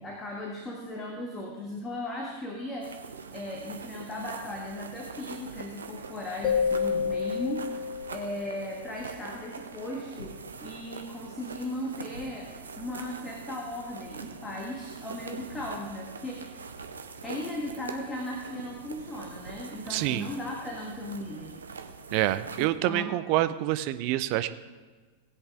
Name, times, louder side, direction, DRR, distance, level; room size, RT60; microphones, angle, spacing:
voice 1, 0.0-3.1 3.3-7.7 8.1-12.5 12.8-16.6 17.2-21.6 22.6-23.2, left 1 dB, 15° left, -1 dB, 1.7 m, -37 dB
sound 1, 2.8-22.7, right 5 dB, 70° right, 0.9 m, -43 dB
sound 2, 6.4-9.1, left 6 dB, 35° left, 1.8 m, -30 dB
voice 2, 19.9-20.3 22.1-24.5, right 14 dB, 45° right, 12 dB, 0.6 m, -27 dB
18.5 x 8.3 x 3.6 m, 1.4 s
figure-of-eight pair, 90°, 0 cm